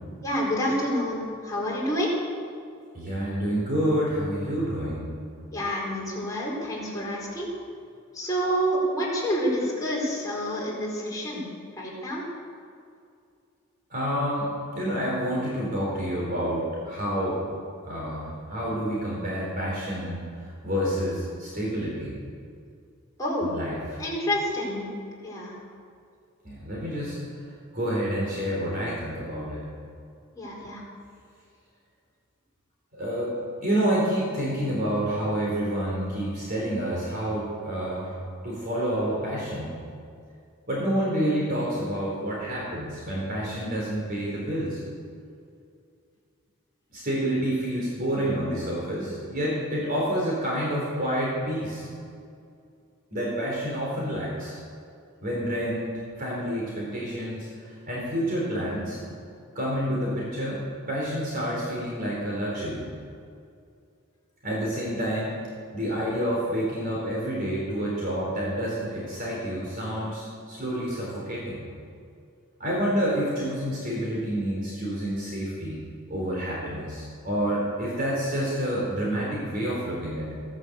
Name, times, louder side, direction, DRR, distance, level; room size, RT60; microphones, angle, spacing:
voice 1, 0.2-2.1 5.5-7.5 8.1-11.4 11.8-12.2 23.2-23.5 24.0-24.9 25.2-25.5 30.4-30.8, equal, 15° left, -5 dB, 4.7 m, -28 dB
voice 2, 2.9-5.1 13.9-17.4 17.8-22.1 23.4-24.0 26.4-27.2 27.7-29.6 32.9-33.4 33.6-38.2 38.4-39.8 40.7-44.8 46.9-51.9 53.1-54.6 55.2-59.0 59.5-60.6 60.9-62.9 64.4-65.4 65.7-71.6 72.6-80.3, equal, 40° right, -5 dB, 4.2 m, -28 dB
16.5 x 10.5 x 8.2 m, 2.4 s
head